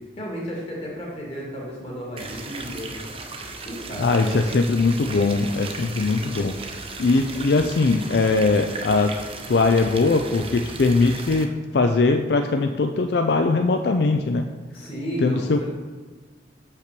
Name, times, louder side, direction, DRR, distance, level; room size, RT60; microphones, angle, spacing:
voice 1, 0.2-3.0 3.6-4.5 14.7-15.7, equal, 35° left, -3 dB, 2.2 m, -33 dB
sound 1, 2.2-11.5, right 3 dB, 30° right, 0.7 m, -36 dB
voice 2, 4.0-6.5 7.0-9.1 9.5-14.5 15.2-15.7, left 3 dB, 70° left, 6 dB, 0.4 m, -21 dB
6.0 x 5.6 x 6.7 m, 1.4 s
head